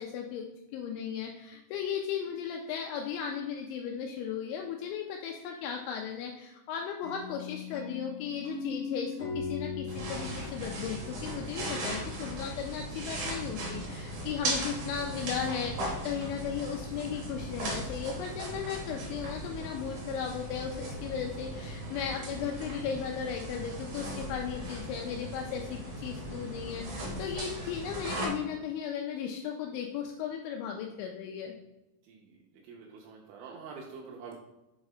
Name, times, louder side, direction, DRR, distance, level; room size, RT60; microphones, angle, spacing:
voice 1, 0.0-31.5, left 7 dB, 85° left, 2 dB, 2.6 m, -36 dB
sound 1, 7.0-11.9, left 5 dB, 40° left, 0.8 m, -40 dB
sound 2, 9.9-28.3, right 1 dB, 65° right, 2.0 m, -38 dB
voice 2, 32.1-32.4 32.6-34.4, right 5 dB, 80° right, -1 dB, 3.0 m, -46 dB
7.4 x 3.2 x 4.9 m, 0.97 s
omnidirectional pair, 5.7 m